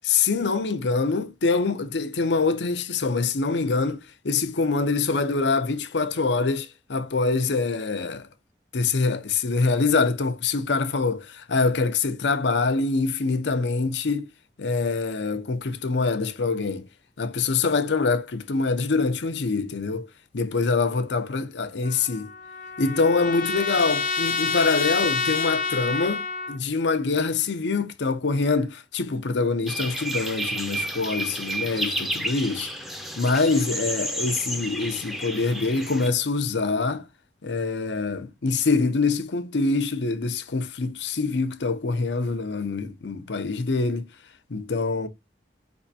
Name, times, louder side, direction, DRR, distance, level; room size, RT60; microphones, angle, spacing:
voice 1, 0.0-8.3 8.7-14.3 14.6-16.9 17.2-20.1 20.3-22.3 22.8-32.7 33.2-37.1 37.4-44.1 44.5-45.1, left 4 dB, 85° left, 0.7 m, -25 dB
Trumpet, 21.8-26.6, left 5 dB, 45° left, 0.7 m, -28 dB
sound 1, 29.7-36.1, right 1 dB, ahead, 0.5 m, -31 dB
5.1 x 3.5 x 2.7 m
head